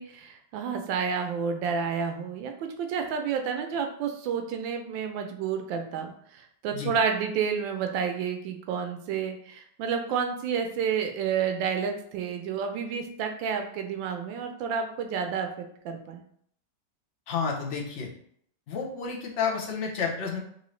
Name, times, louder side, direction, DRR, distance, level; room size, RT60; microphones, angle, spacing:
voice 1, 0.0-16.2, right 6 dB, 90° right, 5 dB, 1.3 m, -30 dB
voice 2, 17.3-18.1 18.7-20.4, left 5 dB, 55° left, -1 dB, 0.8 m, -30 dB
4.0 x 2.6 x 3.1 m, 0.65 s
omnidirectional pair, 2.0 m